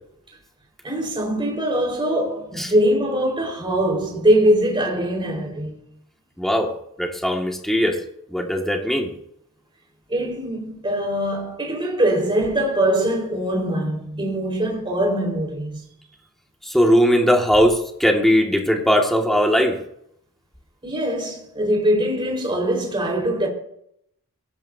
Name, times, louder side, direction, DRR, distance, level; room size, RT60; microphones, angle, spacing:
voice 1, 0.8-5.7 10.1-15.8 20.8-23.5, right 1 dB, 25° right, 4.7 m, -22 dB
voice 2, 6.4-6.7 7.0-8.0 8.3-9.1 16.7-19.8, equal, ahead, 2.1 m, -19 dB
21.5 x 17.5 x 2.8 m
head